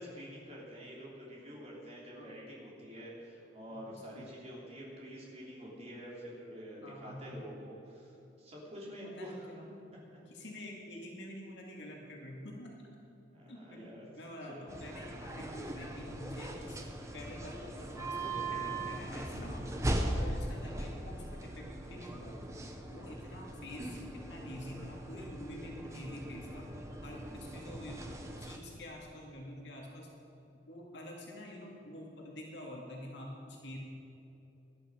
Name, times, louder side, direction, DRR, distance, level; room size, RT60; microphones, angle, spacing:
voice 1, 0.0-9.5 11.7-11.9 13.3-14.1 14.5-14.7, equal, 35° right, -5 dB, 3.4 m, -47 dB
voice 2, 3.7-4.3 6.8-7.4 9.2-9.7 10.3-12.9 13.5-16.9 17.1-19.7 20.1-22.6 22.9-26.7 27.0-28.1 28.4-30.1 30.7-33.8, left 1 dB, 65° left, -1 dB, 2.1 m, -47 dB
sound 1, 14.7-28.6, right 1 dB, 15° right, 1.0 m, -39 dB
18.5 x 11.5 x 5.1 m, 2.8 s
head